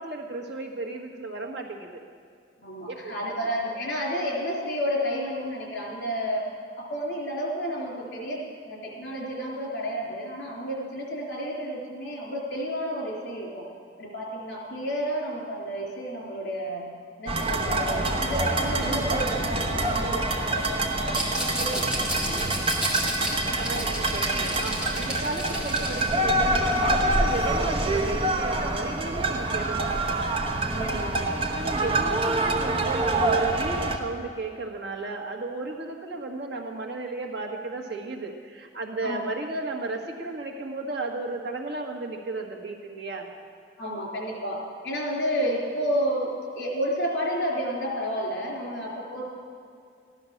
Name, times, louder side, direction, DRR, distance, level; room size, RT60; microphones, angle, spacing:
voice 1, 0.0-2.0 2.9-3.5 23.6-30.5 30.8-43.3, right 3 dB, 70° right, 1 dB, 1.6 m, -34 dB
voice 2, 2.6-6.5 6.8-13.7 14.0-16.9 17.2-22.9 30.7-31.2 39.0-39.2 43.8-49.3, equal, 75° left, -2 dB, 3.7 m, -31 dB
sound 1, 17.3-34.0, right 2 dB, 30° right, 1.0 m, -26 dB
Rattle, 21.1-26.2, equal, 5° right, 2.1 m, -32 dB
14.0 x 10.5 x 6.5 m, 2.3 s
head